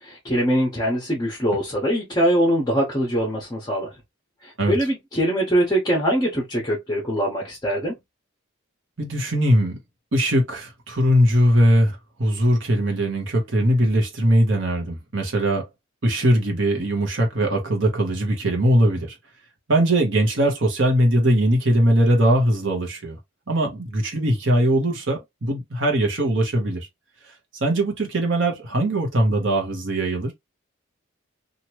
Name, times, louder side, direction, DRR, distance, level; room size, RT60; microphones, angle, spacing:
voice 1, 0.0-3.9 4.4-8.0, equal, 20° left, 1.0 m, -23 dB
voice 2, 9.0-9.8 10.1-15.7 16.0-19.2 19.7-23.2 23.5-26.9 27.2-30.3, right 1 dB, 65° right, 1.1 m, -20 dB
3.0 x 2.5 x 2.9 m
head